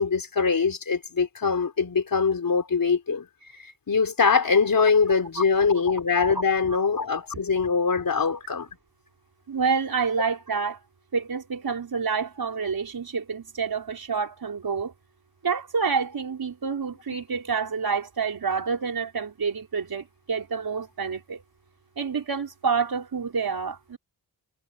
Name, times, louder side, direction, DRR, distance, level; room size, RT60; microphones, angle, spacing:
voice 1, 0.0-3.3 3.9-8.7, left 5 dB, 60° left, 4.6 m, -23 dB
voice 2, 9.5-10.8 11.1-14.9 15.4-21.4 22.0-24.0, right 5 dB, 70° right, 5.5 m, -28 dB
wide cardioid pair, 100°, 38 cm